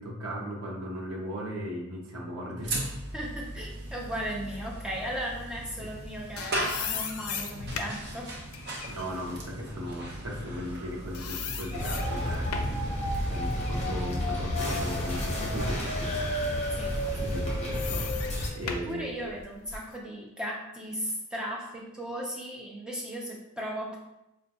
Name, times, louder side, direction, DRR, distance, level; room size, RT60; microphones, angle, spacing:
voice 1, 0.0-3.0 5.8-5.9 8.8-12.5 13.3-16.2 17.1-18.1 18.5-19.3, equal, 90° right, -1 dB, 0.7 m, -37 dB
sound 1, 2.6-15.9, right 1 dB, 50° right, 0.6 m, -38 dB
voice 2, 3.1-8.3 16.8-16.9 18.6-24.0, equal, 5° right, -3 dB, 0.4 m, -36 dB
sound 2, 5.9-10.8 11.1-12.9 13.3-15.3 15.8-15.9 16.9-19.9, left 6 dB, 90° left, 0.4 m, -38 dB
sound 3, 11.7-18.5, left 1 dB, 35° left, 0.7 m, -30 dB
4.6 x 2.2 x 2.7 m, 0.87 s
head